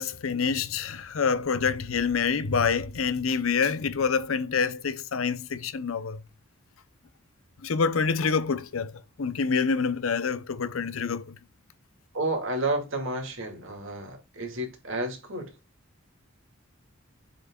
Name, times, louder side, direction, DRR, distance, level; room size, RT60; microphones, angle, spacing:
voice 1, 0.0-6.2 7.6-8.9 9.2-11.4, left 5 dB, 75° left, 0.7 m, -27 dB
voice 2, 12.1-15.5, right 2 dB, 65° right, 2.3 m, -31 dB
7.5 x 6.0 x 2.3 m
head